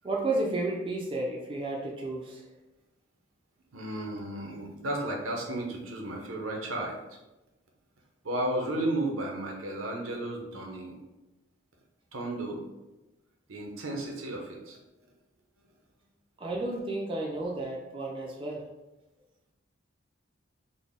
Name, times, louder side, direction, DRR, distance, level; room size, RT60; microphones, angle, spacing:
voice 1, 0.0-2.4 16.4-18.7, right 2 dB, 25° right, -1 dB, 0.3 m, -32 dB
voice 2, 3.7-7.0 8.2-11.0 12.1-12.6 13.5-14.8, right 1 dB, 85° right, 0 dB, 0.7 m, -33 dB
3.9 x 2.0 x 3.6 m, 1.0 s
head